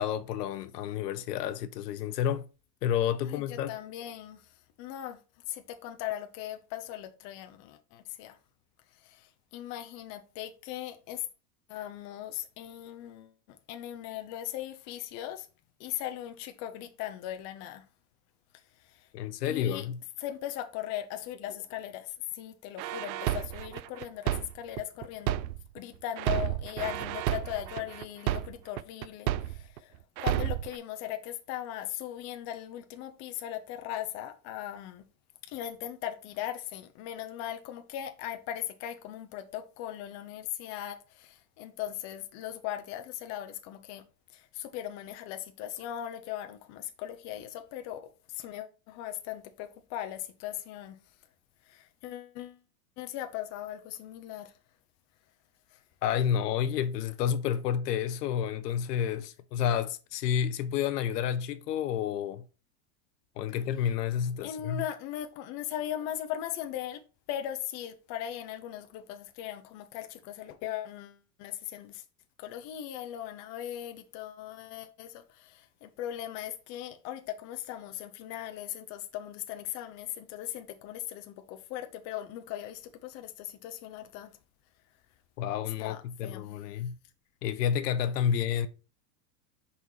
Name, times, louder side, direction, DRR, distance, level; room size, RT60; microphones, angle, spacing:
voice 1, 0.0-2.4 2.8-3.7 19.1-20.0 56.0-62.4 63.4-64.8 85.4-87.0 87.4-88.7, left 9 dB, 70° left, 0.9 m, -30 dB
voice 2, 3.2-5.2 5.5-8.4 8.9-11.3 11.7-15.5 15.8-17.8 18.8-19.1 19.4-19.9 20.2-25.4 25.7-35.1 35.4-44.0 44.3-51.0 51.6-52.6 53.0-54.6 55.7-55.8 64.4-72.0 72.4-84.3 85.8-86.6, left 12 dB, 35° left, 0.7 m, -39 dB
sound 1, 22.8-25.8 26.2-29.8 30.2-30.8, right 13 dB, 85° right, 0.6 m, -31 dB
5.4 x 4.3 x 4.7 m
supercardioid pair, 145°, 50 cm